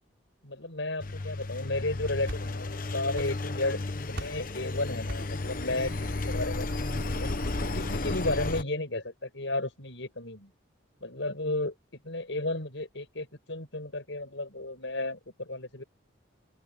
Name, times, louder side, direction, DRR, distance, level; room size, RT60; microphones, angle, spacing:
voice 1, 0.4-3.8 4.1-6.7 7.2-7.3 7.7-10.5 11.0-15.8, left 2 dB, 70° left, 5.9 m, -33 dB
Engine, 1.0-8.6, left 2 dB, 45° left, 1.0 m, -33 dB
sound 1, 1.9-2.8 3.1-3.8 4.1-4.5 5.1-5.5, right 1 dB, 65° right, 5.4 m, -41 dB
open air
head